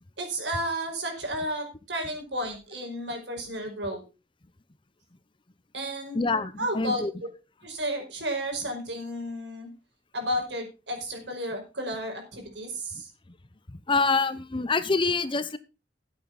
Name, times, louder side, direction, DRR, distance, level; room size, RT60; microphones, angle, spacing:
voice 1, 0.2-4.0 5.7-7.3 7.6-9.7 10.1-13.1, equal, 80° right, 4 dB, 5.3 m, -32 dB
voice 2, 6.1-7.1 13.9-15.6, left 4 dB, 30° left, 14 dB, 0.8 m, -26 dB
14.0 x 8.8 x 4.1 m, 0.30 s
head